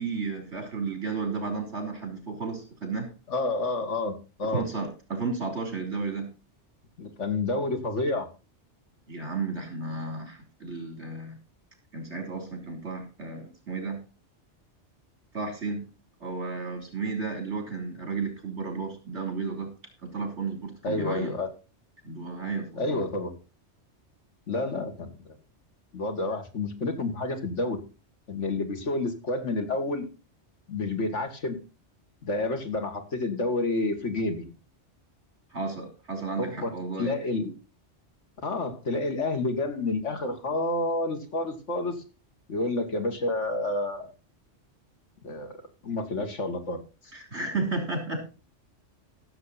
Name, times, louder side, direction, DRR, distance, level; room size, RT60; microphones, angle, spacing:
voice 1, 0.0-3.1 4.4-6.3 9.1-11.4 11.9-14.0 15.3-15.9 16.2-19.7 20.0-21.4 22.0-23.1 35.5-37.2 47.1-48.2, right 4 dB, 70° right, 4 dB, 3.7 m, -33 dB
voice 2, 3.3-4.6 7.0-8.3 20.8-21.5 22.8-23.3 24.5-25.1 25.9-27.8 28.3-30.1 30.7-31.6 32.2-34.5 36.4-36.7 37.0-37.5 38.4-42.0 42.5-44.1 45.2-45.6 45.8-46.8, left 2 dB, 80° left, 5 dB, 2.3 m, -29 dB
15.0 x 7.5 x 4.1 m, 0.32 s
omnidirectional pair, 1.2 m